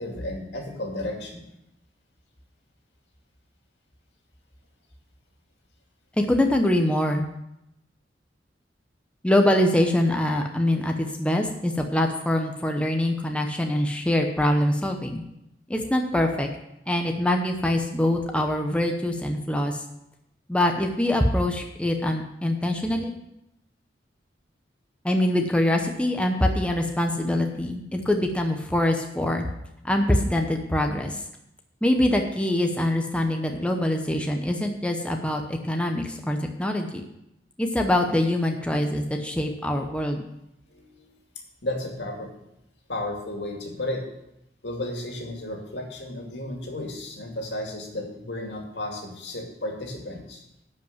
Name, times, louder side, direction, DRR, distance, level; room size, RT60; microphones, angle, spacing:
voice 1, 0.0-1.4 40.7-41.1 41.6-42.3 42.9-44.1 44.6-50.4, left 1 dB, 70° left, 1 dB, 2.4 m, -33 dB
voice 2, 6.2-7.2 9.2-15.2 15.7-16.5 16.9-19.8 20.5-23.1 25.0-29.5 29.8-31.2 31.8-37.0 37.6-40.2, left 1 dB, 5° left, 3 dB, 0.8 m, -24 dB
11.5 x 5.3 x 7.3 m, 0.84 s
head